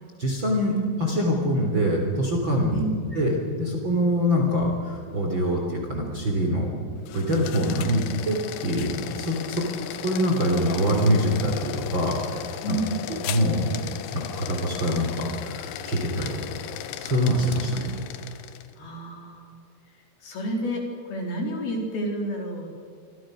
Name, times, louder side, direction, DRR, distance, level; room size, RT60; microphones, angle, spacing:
voice 1, 0.2-2.8 3.1-6.7 7.1-12.8 13.3-13.7 14.1-16.3 17.0-17.9, equal, 25° right, 1 dB, 3.4 m, -24 dB
voice 2, 2.7-3.0 12.6-13.1 16.2-16.4 18.8-19.6 20.2-22.7, right 1 dB, 50° left, 1 dB, 5.3 m, -30 dB
sound 1, 7.0-18.7, left 10 dB, 70° left, 2.5 m, -36 dB
28.0 x 24.0 x 6.5 m, 2.2 s
omnidirectional pair, 5.9 m